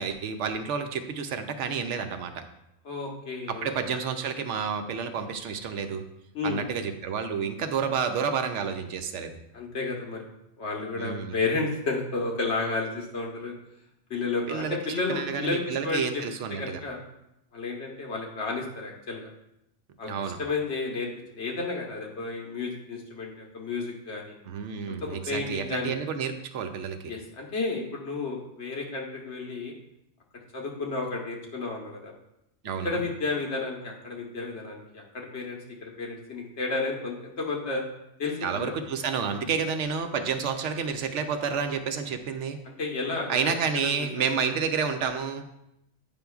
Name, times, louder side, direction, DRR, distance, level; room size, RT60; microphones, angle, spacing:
voice 1, 0.0-2.4 3.5-6.0 6.4-9.4 11.0-11.3 14.5-14.8 15.1-16.8 20.1-20.4 24.5-27.1 32.6-33.0 38.4-42.6 43.3-45.4, right 6 dB, 80° right, 7 dB, 0.9 m, -30 dB
voice 2, 2.8-3.7 6.3-6.6 9.5-10.2 10.6-13.5 14.1-16.2 16.5-17.1 17.5-19.3 20.0-21.1 21.3-24.4 24.9-26.0 27.0-29.7 30.5-32.1 32.8-37.8 38.2-38.7 42.6-43.5 43.8-44.4, left 3 dB, 70° left, -1 dB, 1.4 m, -32 dB
8.9 x 5.3 x 2.3 m, 0.82 s
omnidirectional pair, 1.2 m